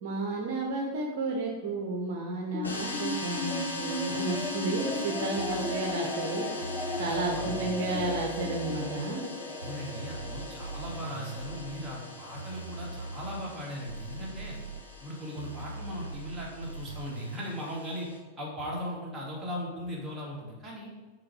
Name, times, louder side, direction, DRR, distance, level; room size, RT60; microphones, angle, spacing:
voice 1, 0.0-6.5 7.0-9.2, right 2 dB, 50° right, 1 dB, 0.9 m, -32 dB
sound 1, 2.5-15.1, left 2 dB, 20° left, 0.9 m, -37 dB
sound 2, 2.6-18.2, left 1 dB, 80° left, 1.2 m, -42 dB
sound 3, 5.4-5.8 6.6-7.6 7.9-8.8 9.6-11.8 12.4-13.4 13.9-14.8 15.4-17.4, right 3 dB, 80° right, 0.5 m, -40 dB
voice 2, 6.9-8.1 9.6-14.6 15.0-20.9, equal, 10° right, -5 dB, 2.2 m, -38 dB
6.1 x 4.3 x 4.8 m, 1.2 s
figure-of-eight pair, 90°, 0 cm